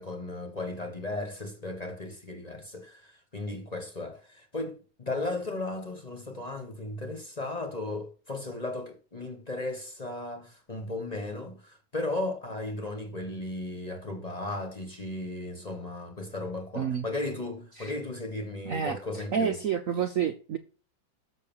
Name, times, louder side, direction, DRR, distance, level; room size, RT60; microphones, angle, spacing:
voice 1, 0.0-19.6, left 2 dB, 25° left, 1.3 m, -36 dB
voice 2, 16.7-17.1 17.8-17.9 18.6-20.6, right 7 dB, 60° right, 0.9 m, -29 dB
6.7 x 6.4 x 7.1 m
omnidirectional pair, 2.0 m